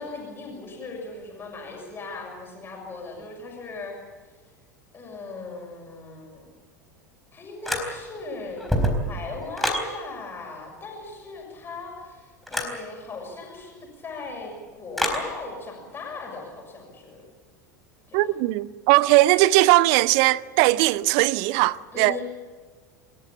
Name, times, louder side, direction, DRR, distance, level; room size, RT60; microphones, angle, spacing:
voice 1, 0.0-4.0 4.9-6.4 7.3-8.7 9.1-17.2 18.1-18.3 21.9-22.2, left 3 dB, 20° left, 6.5 m, -38 dB
sound 1, 7.6-8.2 8.6-9.9 12.5-12.8 15.0-15.3, equal, ahead, 4.2 m, -26 dB
voice 2, 18.1-22.2, right 18 dB, 45° right, 0.7 m, -19 dB
28.0 x 14.0 x 8.8 m
figure-of-eight pair, 80°, 10 cm